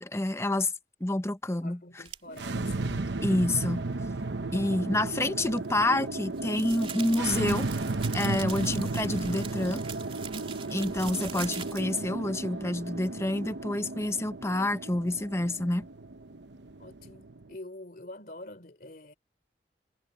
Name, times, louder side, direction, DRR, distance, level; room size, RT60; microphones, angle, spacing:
voice 1, 0.0-0.7 1.0-1.8 3.2-3.8 4.5-7.7 8.1-9.8 10.7-15.9, left 1 dB, 15° left, 0.8 m, -28 dB
voice 2, 1.6-3.1 16.8-19.1, left 1 dB, 55° left, 3.2 m, -45 dB
sound 1, 2.1-2.4 5.5-12.1, right 7 dB, 35° right, 3.2 m, -42 dB
sound 2, 2.3-17.5, right 3 dB, 90° right, 1.0 m, -34 dB
head